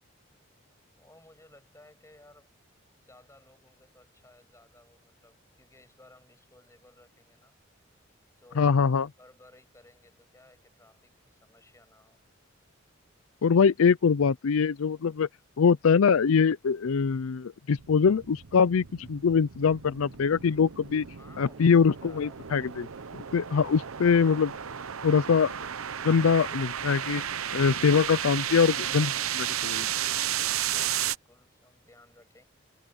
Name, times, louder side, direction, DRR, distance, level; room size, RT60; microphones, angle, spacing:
voice 1, 1.0-2.5 3.0-7.6 8.4-8.8 9.2-12.2 21.2-22.6 28.2-29.1 30.1-32.4, left 1 dB, 15° left, 7.0 m, -57 dB
voice 2, 8.6-9.1 13.4-15.3 15.6-21.1 21.4-22.9 23.3-24.5 25.0-25.5 26.0-27.2 27.5-29.1 29.6-29.9, left 6 dB, 80° left, 0.5 m, -23 dB
sound 1, 17.8-31.2, right 10 dB, 85° right, 0.8 m, -33 dB
head